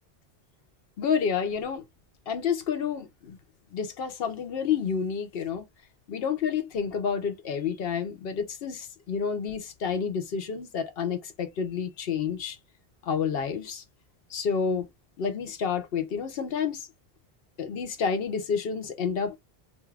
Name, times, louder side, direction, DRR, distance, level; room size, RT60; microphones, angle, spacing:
voice 1, 1.0-1.8 2.3-3.4 3.7-5.6 6.1-12.6 13.1-13.8 14.3-14.9 15.2-16.8 17.6-19.4, left 6 dB, 70° left, 0.9 m, -29 dB
2.7 x 2.4 x 3.1 m
omnidirectional pair, 1.1 m